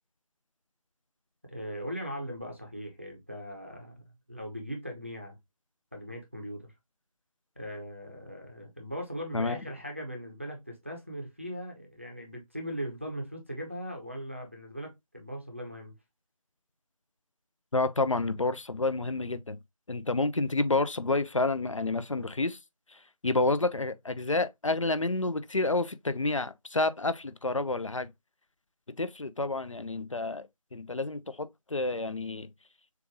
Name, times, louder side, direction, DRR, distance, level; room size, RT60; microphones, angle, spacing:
voice 1, 1.5-5.4 5.9-6.7 7.6-15.9, equal, 20° right, 0.7 m, -39 dB
voice 2, 17.7-19.6 19.9-22.6 23.2-28.1 29.0-32.5, left 2 dB, 60° left, 0.6 m, -29 dB
6.8 x 2.5 x 3.0 m
figure-of-eight pair, 175°, 19 cm